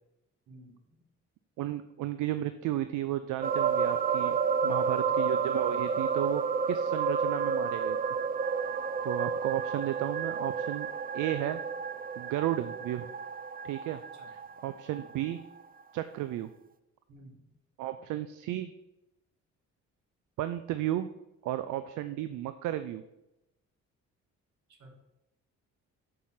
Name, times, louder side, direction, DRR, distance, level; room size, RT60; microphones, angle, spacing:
voice 1, 0.5-0.8 4.6-5.2 14.1-14.3 17.1-17.5 24.7-24.9, right 1 dB, 70° right, 3 dB, 2.0 m, -52 dB
voice 2, 1.6-6.4 6.7-8.0 9.0-10.9 11.1-11.6 12.2-13.1 13.6-14.0 14.3-15.4 15.9-16.5 17.8-18.7 20.4-21.1 21.4-23.0, right 13 dB, 85° right, 11 dB, 0.5 m, -33 dB
sound 1, 3.4-15.2 15.6-15.7, right 6 dB, 30° right, 0.4 m, -30 dB
6.7 x 5.3 x 5.9 m, 0.90 s
cardioid pair, 90°, 30 cm